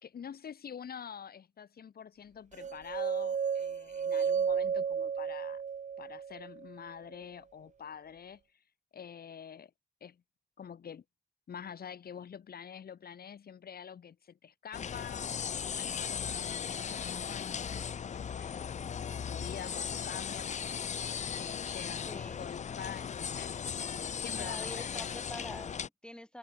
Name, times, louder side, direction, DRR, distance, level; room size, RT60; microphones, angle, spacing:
voice 1, 0.0-5.6 6.0-8.6 8.9-9.7 10.0-10.2 10.6-11.0 11.5-25.2, left 7 dB, 70° left, 2.1 m, -47 dB
sound 1, 2.6-6.7, right 7 dB, 45° right, 0.8 m, -33 dB
sound 2, 14.7-25.9, left 7 dB, 45° left, 0.6 m, -37 dB
voice 2, 22.0-22.7 24.3-26.4, left 1 dB, 5° left, 3.7 m, -46 dB
wide cardioid pair, 175°, 17 cm